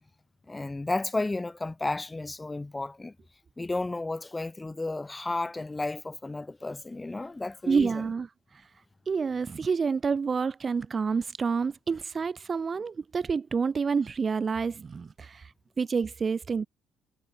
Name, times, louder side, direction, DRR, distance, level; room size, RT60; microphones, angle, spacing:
voice 1, 0.5-3.1 3.6-8.0, left 2 dB, 15° left, 3.3 m, -33 dB
voice 2, 7.7-8.3 9.1-16.7, right 5 dB, 35° right, 1.2 m, -28 dB
supercardioid pair, 80°, 0 cm